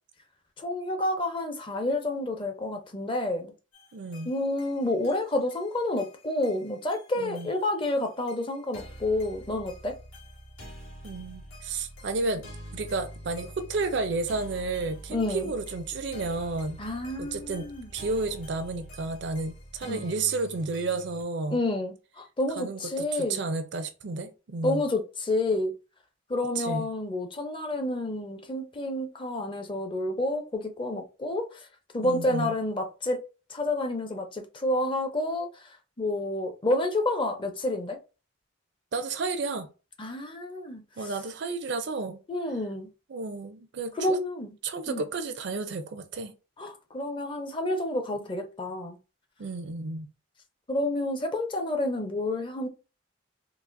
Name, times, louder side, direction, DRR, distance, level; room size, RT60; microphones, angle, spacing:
voice 1, 0.6-3.5 4.2-9.9 15.1-15.5 16.8-17.9 19.9-20.1 21.5-23.5 24.6-25.7 26.3-31.5 31.9-33.2 33.5-35.5 36.0-38.0 40.0-40.8 42.3-42.9 44.0-44.5 44.9-45.1 46.6-49.0 50.7-52.7, left 1 dB, 25° left, 0.6 m, -29 dB
sound 1, 3.7-21.2, equal, 80° left, 1.4 m, -46 dB
voice 2, 3.9-4.3 7.2-7.5 11.0-12.4 12.7-16.8 17.2-17.7 17.9-21.6 22.6-24.8 26.6-26.9 32.0-32.5 38.9-39.7 41.0-42.2 43.1-44.2 44.6-46.3 49.4-50.1, right 3 dB, 60° right, 0.4 m, -32 dB
4.0 x 2.5 x 2.5 m
head